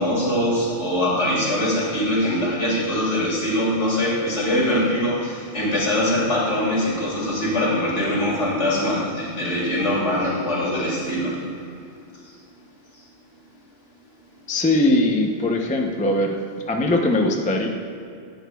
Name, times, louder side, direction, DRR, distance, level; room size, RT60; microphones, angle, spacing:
voice 1, 0.0-11.5, left 1 dB, 75° left, -5 dB, 2.3 m, -22 dB
voice 2, 14.5-16.4 16.7-17.7, left 1 dB, 10° left, 1 dB, 0.4 m, -20 dB
11.0 x 8.1 x 2.3 m, 2.4 s
omnidirectional pair, 1.3 m